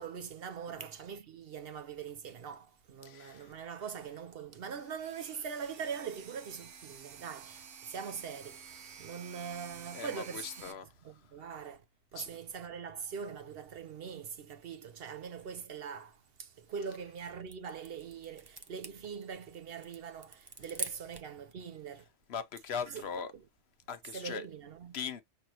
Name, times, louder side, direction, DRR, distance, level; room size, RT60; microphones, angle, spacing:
voice 1, 0.0-10.7 11.0-11.8 12.1-22.0 22.9-23.1 23.3-23.4 24.1-25.0, right 6 dB, 60° right, 0.7 m, -42 dB
voice 2, 3.0-3.5 9.9-10.9 12.1-12.3 22.3-23.3 23.9-24.5 24.9-25.2, left 6 dB, 65° left, 0.9 m, -40 dB
sound 1, 5.0-10.7, right 7 dB, 80° right, 1.2 m, -51 dB
sound 2, 16.7-21.4, right 3 dB, 30° right, 0.5 m, -46 dB
6.2 x 2.7 x 2.8 m
omnidirectional pair, 1.2 m